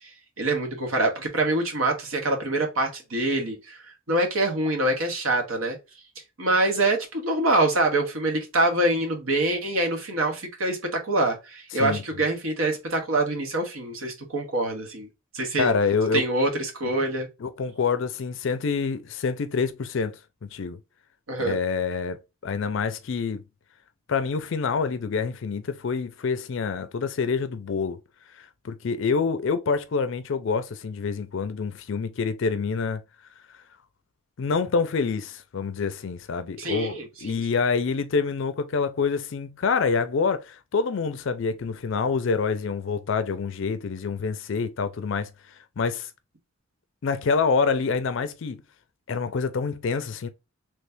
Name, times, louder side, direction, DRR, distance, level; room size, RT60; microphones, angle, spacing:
voice 1, 0.0-5.8 6.4-15.1 15.3-15.7 16.1-17.3 21.3-21.6 36.6-37.4, right 2 dB, 90° right, 1.3 m, -25 dB
voice 2, 15.6-16.2 17.4-20.2 20.5-20.8 21.4-23.4 24.1-28.0 28.3-33.0 34.4-46.1 47.0-48.6 49.1-50.3, left 5 dB, 65° left, 0.4 m, -27 dB
3.4 x 3.2 x 2.6 m
head